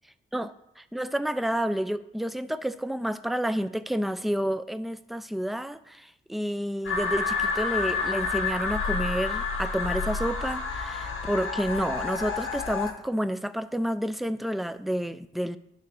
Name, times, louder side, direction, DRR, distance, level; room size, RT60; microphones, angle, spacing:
voice 1, 0.3-15.6, equal, ahead, 12 dB, 0.4 m, -30 dB
sound 1, 6.8-12.9, left 4 dB, 75° left, 1.2 m, -29 dB
10.5 x 4.2 x 6.2 m, 0.80 s
cardioid pair, 80°, 21 cm